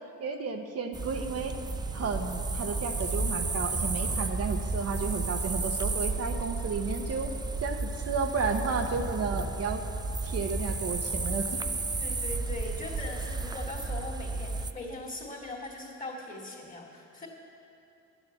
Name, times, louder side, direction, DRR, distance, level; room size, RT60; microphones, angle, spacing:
voice 1, 0.2-1.6 1.9-7.3 7.6-9.8 10.2-11.6, right 4 dB, 55° right, 4 dB, 0.9 m, -32 dB
sound 1, 0.9-14.7, right 3 dB, 15° right, 0.4 m, -32 dB
voice 2, 12.0-17.3, left 2 dB, 25° left, -2 dB, 2.5 m, -40 dB
11.0 x 7.2 x 8.0 m, 2.7 s
cardioid pair, 90°, 30 cm